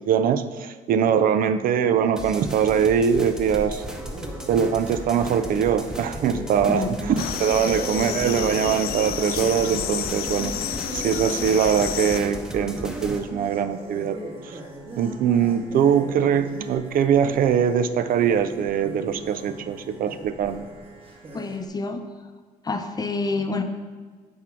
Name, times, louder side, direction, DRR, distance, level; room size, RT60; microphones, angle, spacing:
voice 1, 0.0-3.8 4.5-10.5 10.9-14.2 14.4-14.6 15.0-20.7, right 8 dB, 55° right, 10 dB, 0.5 m, -22 dB
sound 1, 2.2-13.2, equal, 5° right, 0.9 m, -36 dB
sound 2, 3.5-21.7, right 1 dB, 35° right, 1.6 m, -37 dB
sound 3, 7.2-12.2, left 10 dB, 65° left, 0.5 m, -31 dB
voice 2, 21.3-22.0 22.6-23.6, left 3 dB, 25° left, 7 dB, 0.7 m, -27 dB
10.5 x 3.7 x 5.9 m, 1.5 s
cardioid pair, 110°, 17 cm